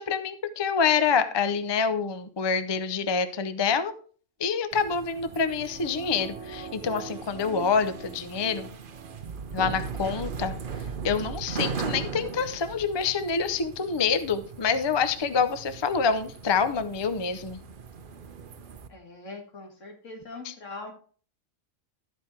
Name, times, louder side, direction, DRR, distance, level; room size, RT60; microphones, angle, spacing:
voice 1, 0.0-3.9 4.4-8.7 9.5-17.6 20.4-20.5, left 6 dB, 40° left, 10 dB, 0.4 m, -27 dB
sound 1, 4.7-18.9, right 6 dB, 50° right, 0.8 m, -39 dB
sound 2, 4.9-9.7 10.0-10.1, right 4 dB, 75° right, 1.4 m, -44 dB
voice 2, 18.9-20.9, left 3 dB, 65° left, 3 dB, 2.1 m, -42 dB
12.0 x 5.1 x 4.3 m, 0.42 s
omnidirectional pair, 1.4 m